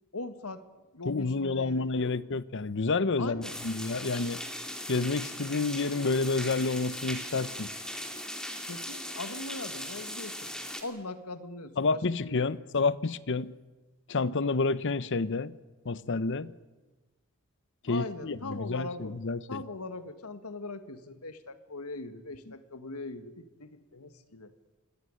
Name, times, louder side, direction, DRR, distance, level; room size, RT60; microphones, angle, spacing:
voice 1, 0.1-0.6 0.9-2.1 3.2-3.6 8.7-10.5 10.8-12.6 17.9-19.2 19.5-24.5, left 2 dB, 90° left, 1.8 m, -40 dB
voice 2, 1.0-4.4 4.9-7.7 11.8-13.5 14.1-15.5 15.8-16.5 17.8-19.6 22.5-22.6, left 3 dB, 55° left, 0.8 m, -29 dB
sound 1, 3.4-10.8, equal, 5° left, 2.9 m, -39 dB
25.0 x 17.5 x 9.8 m
head